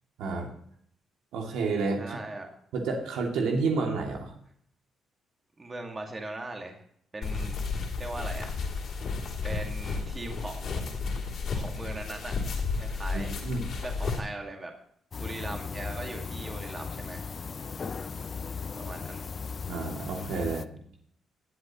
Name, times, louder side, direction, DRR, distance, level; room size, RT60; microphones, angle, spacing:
voice 1, 0.2-0.5 1.3-2.2 2.7-4.3 13.1-13.7 19.7-20.7, right 4 dB, 85° right, 0 dB, 2.6 m, -30 dB
voice 2, 2.0-2.5 5.6-6.8 7.1-7.6 8.0-8.5 9.4-10.9 11.5-12.4 12.8-13.3 13.8-14.7 15.2-17.3 18.8-19.3, right 2 dB, 25° right, 2 dB, 2.1 m, -39 dB
sound 1, 7.2-14.2, left 4 dB, 60° left, 3.1 m, -32 dB
sound 2, 15.1-20.6, left 5 dB, 40° left, 0.5 m, -37 dB
19.0 x 8.0 x 3.1 m, 0.65 s
cardioid pair, 90°, 0 cm